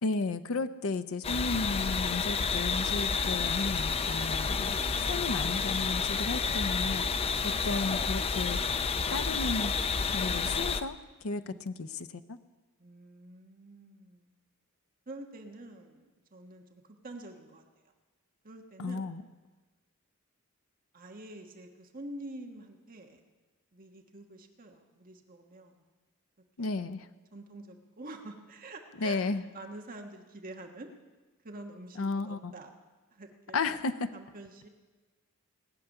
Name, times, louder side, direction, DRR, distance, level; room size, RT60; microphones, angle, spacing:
voice 1, 0.0-7.1 7.4-8.6 9.1-9.7 10.1-11.0 11.2-12.4 18.8-19.2 26.6-27.1 29.0-29.4 32.0-32.5 33.5-34.1, left 3 dB, 75° left, 10 dB, 0.6 m, -33 dB
sound 1, 1.2-10.8, left 5 dB, 25° left, 0.5 m, -30 dB
voice 2, 11.4-11.8 12.8-14.3 15.1-17.9 18.4-19.1 20.9-23.2 23.7-25.9 26.6-26.8 27.3-30.9 31.4-32.7 33.1-33.6 34.1-34.7, right 2 dB, 40° right, 3 dB, 1.3 m, -47 dB
18.5 x 6.9 x 9.8 m, 1.3 s
head